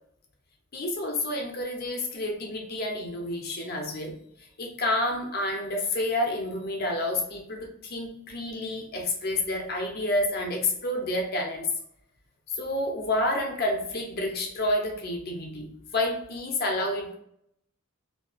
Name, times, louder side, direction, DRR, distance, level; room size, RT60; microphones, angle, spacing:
voice 1, 0.7-11.7 12.5-17.1, left 1 dB, 45° left, 1 dB, 0.5 m, -29 dB
2.4 x 2.2 x 2.3 m, 0.70 s
head